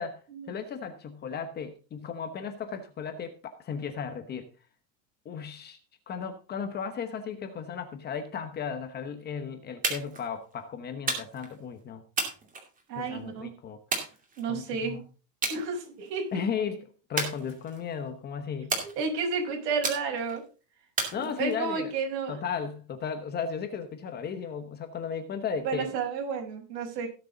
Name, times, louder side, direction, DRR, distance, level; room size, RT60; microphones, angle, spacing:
voice 1, 0.0-4.5 5.2-5.8 6.1-12.0 12.9-13.8 14.5-15.0 16.3-16.8 17.1-18.8 21.1-21.9 22.3-25.9, left 6 dB, 20° left, 8 dB, 1.0 m, -35 dB
sound 1, 9.8-10.3 11.1-11.5 12.2-13.1 13.9-14.7 15.4-15.6 16.0-16.4 17.2-17.9 18.7-19.3 19.8-20.4 21.0-21.8, right 3 dB, 15° right, 2.5 m, -33 dB
voice 2, 12.9-13.5 14.4-15.0 15.5-16.3 18.8-20.4 21.2-22.4 25.6-27.1, right 5 dB, 80° right, 3 dB, 5.4 m, -31 dB
16.5 x 6.7 x 3.9 m, 0.35 s
supercardioid pair, 160°, 48 cm